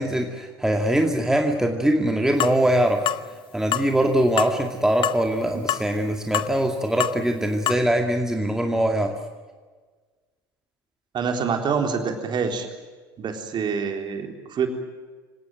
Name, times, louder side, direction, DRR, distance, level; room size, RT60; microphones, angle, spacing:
voice 1, 0.0-3.0 3.5-9.1, right 1 dB, 5° right, 3 dB, 2.3 m, -22 dB
sound 1, 2.4-2.6 3.1-3.2 3.7-3.9 4.4-4.6 5.0-5.2 5.7-5.9 6.3-6.5 7.0-7.2 7.7-7.8, left 12 dB, 40° left, 0.8 m, -25 dB
voice 2, 11.1-12.7 13.2-14.7, right 6 dB, 35° right, 5 dB, 3.7 m, -26 dB
25.5 x 18.0 x 9.3 m, 1.4 s
figure-of-eight pair, 70°, 13 cm